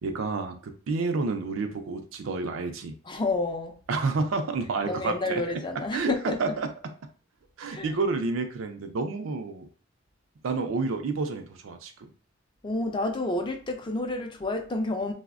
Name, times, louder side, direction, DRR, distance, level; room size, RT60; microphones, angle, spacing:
voice 1, 0.0-2.9 3.9-5.4 5.9-6.1 6.4-6.7 7.6-9.7 10.4-11.9, right 4 dB, 85° right, 6 dB, 0.4 m, -29 dB
voice 2, 3.1-3.8 4.8-6.6 7.7-7.9 12.6-15.1, left 2 dB, 25° left, 4 dB, 0.4 m, -30 dB
3.3 x 2.1 x 2.4 m, 0.41 s
head